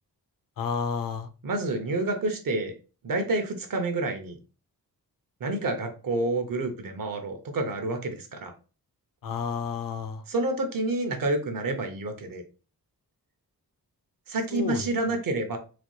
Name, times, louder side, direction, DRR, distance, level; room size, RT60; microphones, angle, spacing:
voice 1, 0.6-1.3 9.2-10.2 14.5-14.9, left 6 dB, 60° left, 9 dB, 0.5 m, -30 dB
voice 2, 1.4-2.7 3.0-4.4 5.4-8.5 10.3-12.4 14.3-15.6, right 2 dB, 60° right, 6 dB, 0.8 m, -28 dB
4.1 x 2.3 x 3.1 m, 0.35 s
wide cardioid pair, 160°, 38 cm